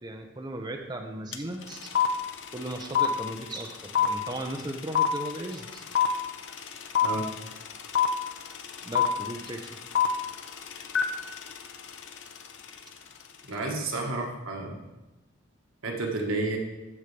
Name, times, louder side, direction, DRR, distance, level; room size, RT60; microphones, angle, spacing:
voice 1, 0.0-1.9 2.5-5.8 8.8-9.8, right 1 dB, 20° right, 3 dB, 0.6 m, -37 dB
sound 1, 1.3-1.4 1.6-12.8, left 8 dB, 60° left, 0.7 m, -27 dB
voice 2, 13.4-14.8 15.8-16.6, right 2 dB, 85° right, 0 dB, 1.5 m, -31 dB
14.5 x 5.4 x 3.3 m, 1.1 s
head